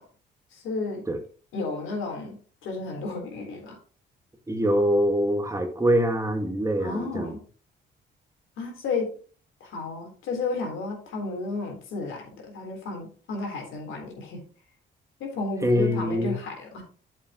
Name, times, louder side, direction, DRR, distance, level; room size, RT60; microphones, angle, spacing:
voice 1, 0.5-1.0 1.5-3.8 6.8-7.4 8.6-9.1 9.6-14.4 15.2-16.8, left 3 dB, 85° left, 1 dB, 3.6 m, -32 dB
voice 2, 4.5-7.3 15.6-16.3, equal, 15° right, 5 dB, 1.6 m, -24 dB
8.8 x 7.4 x 2.9 m, 0.41 s
cardioid pair, 90°, 20 cm